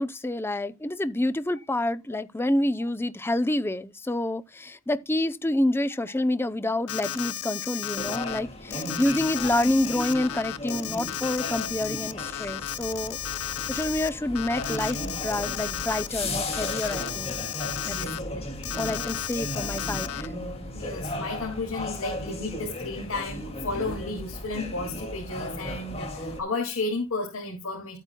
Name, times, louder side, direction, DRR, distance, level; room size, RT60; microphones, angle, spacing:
voice 1, 0.0-13.2 13.7-17.4 17.9-18.0 18.7-20.3, left 1 dB, 10° left, 0.5 m, -28 dB
Alarm, 6.9-8.4 8.7-14.1 14.3-16.1 16.5-18.2 18.6-20.3, left 11 dB, 90° left, 0.7 m, -34 dB
sound 1, 8.0-26.4, left 1 dB, 30° left, 2.2 m, -36 dB
voice 2, 17.8-18.5 20.7-28.0, left 3 dB, 70° left, 2.4 m, -33 dB
13.0 x 8.9 x 2.2 m
head